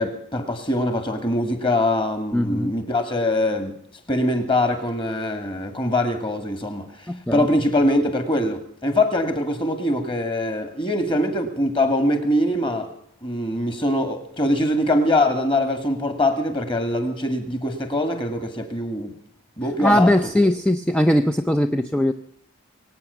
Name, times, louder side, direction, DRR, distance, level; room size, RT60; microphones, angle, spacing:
voice 1, 0.0-3.7 4.1-12.9 13.2-19.1 19.6-20.5, left 1 dB, 25° left, 2.1 m, -23 dB
voice 2, 2.3-2.7 7.1-7.5 19.8-22.1, left 1 dB, 5° left, 0.6 m, -20 dB
23.0 x 8.9 x 7.0 m
head